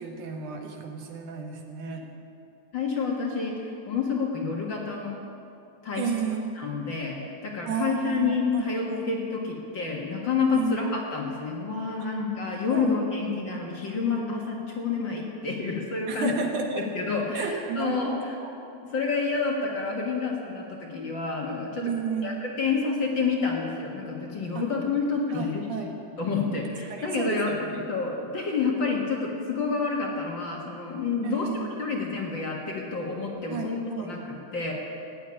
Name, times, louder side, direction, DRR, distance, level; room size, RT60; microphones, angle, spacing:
voice 1, 0.0-2.0 6.0-6.7 7.7-9.1 10.5-10.8 12.0-12.1 12.7-13.0 13.4-14.4 16.1-16.9 17.3-18.6 21.8-22.5 24.5-24.7 25.3-25.9 26.9-27.8 31.2-31.8 33.5-34.1, right 6 dB, 75° right, 3 dB, 3.0 m, -32 dB
voice 2, 2.7-5.3 5.8-6.1 6.5-16.3 16.9-18.4 18.9-21.9 22.2-25.9 26.2-27.6 27.9-34.7, left 4 dB, 45° left, -1 dB, 2.1 m, -29 dB
16.0 x 9.4 x 9.7 m, 2.6 s
omnidirectional pair, 3.5 m